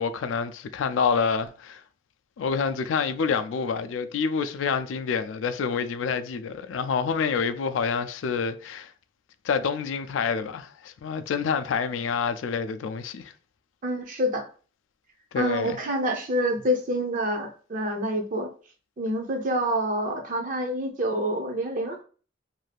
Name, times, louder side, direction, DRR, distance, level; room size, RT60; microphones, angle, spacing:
voice 1, 0.0-1.8 2.4-8.9 9.4-13.3 15.3-15.8, left 6 dB, 85° left, 0.3 m, -27 dB
voice 2, 13.8-14.5 15.4-18.5 19.0-22.0, equal, 45° right, 0.5 m, -27 dB
2.6 x 2.3 x 3.2 m
head